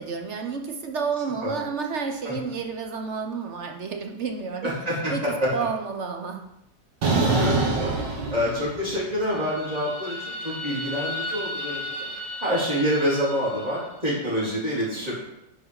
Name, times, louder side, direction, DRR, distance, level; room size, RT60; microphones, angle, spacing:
voice 1, 0.0-4.7 5.1-6.4, right 5 dB, 50° right, 4 dB, 1.1 m, -30 dB
voice 2, 4.6-5.5 7.3-7.9 8.3-12.1 12.4-15.1, equal, 20° right, -8 dB, 4.0 m, -27 dB
sound 1, 7.0-9.0 9.3-13.6, right 2 dB, 80° right, 2.1 m, -28 dB
10.5 x 4.9 x 4.8 m, 0.84 s
omnidirectional pair, 1.9 m